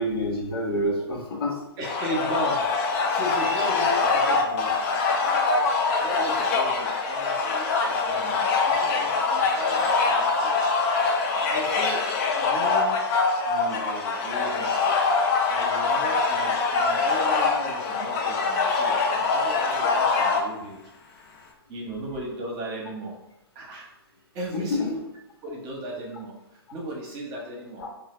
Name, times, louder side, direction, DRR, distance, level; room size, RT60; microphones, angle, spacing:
voice 1, 0.0-1.6 4.5-4.6 24.5-24.8 27.8-27.9, left 1 dB, 70° left, -2 dB, 1.2 m, -27 dB
sound 1, 1.8-20.4, left 4 dB, 35° left, 0.5 m, -24 dB
voice 2, 1.8-2.6 3.1-4.7 6.0-10.5 11.4-12.0 12.3-13.0 13.5-14.7 15.5-20.8 21.7-23.1 23.5-23.9 24.3-25.0 25.4-26.3 26.7-27.8, right 1 dB, 30° right, -2 dB, 0.9 m, -36 dB
3.8 x 2.4 x 3.2 m, 0.87 s
figure-of-eight pair, 125°, 13 cm